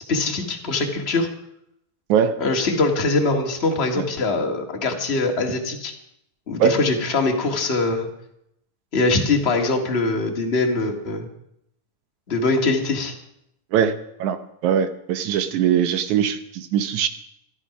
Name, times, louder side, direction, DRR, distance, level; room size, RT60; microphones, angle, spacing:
voice 1, 0.1-1.3 2.4-5.9 6.5-8.1 8.9-11.3 12.3-13.1, left 3 dB, 25° left, 2 dB, 1.4 m, -22 dB
voice 2, 2.1-2.4 3.9-4.1 6.6-6.8 13.7-13.9 14.2-14.4 14.6-17.1, right 8 dB, 70° right, 10 dB, 2.1 m, -21 dB
13.5 x 13.0 x 5.9 m, 0.77 s
omnidirectional pair, 3.9 m